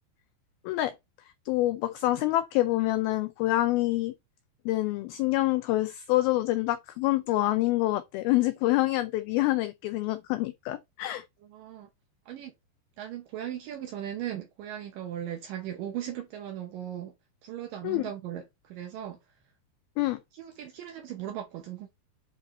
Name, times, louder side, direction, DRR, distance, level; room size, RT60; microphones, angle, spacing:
voice 1, 1.5-4.1 4.7-11.2 17.8-18.0 20.0-20.2, left 17 dB, 90° left, 2.1 m, -26 dB
voice 2, 11.4-11.9 12.3-12.5 13.0-17.1 17.4-19.2 20.3-21.9, right 11 dB, 75° right, 2.0 m, -38 dB
9.7 x 3.9 x 4.2 m
omnidirectional pair, 4.9 m